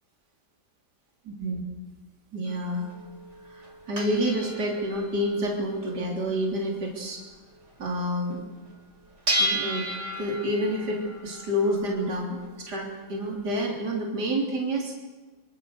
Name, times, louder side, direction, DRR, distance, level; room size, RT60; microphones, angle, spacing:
voice 1, 1.2-1.6 2.3-2.9 3.4-7.2 7.8-8.4 9.4-9.9 10.2-14.9, equal, 60° right, -1 dB, 4.1 m, -28 dB
sound 1, 2.5-8.0 8.3-8.4 8.7-13.6, equal, 35° right, 5.3 m, -34 dB
25.5 x 25.5 x 6.6 m, 1.3 s
omnidirectional pair, 2.0 m